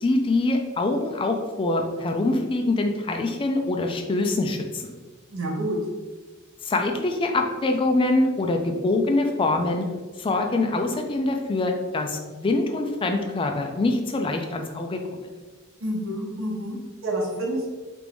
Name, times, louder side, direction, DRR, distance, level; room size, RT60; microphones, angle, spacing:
voice 1, 0.0-4.9 6.6-9.9 10.2-15.0, left 2 dB, 25° left, 4 dB, 0.3 m, -24 dB
voice 2, 5.3-5.8 15.8-17.7, right 1 dB, 70° right, -1 dB, 0.8 m, -28 dB
3.4 x 2.5 x 3.3 m, 1.3 s
head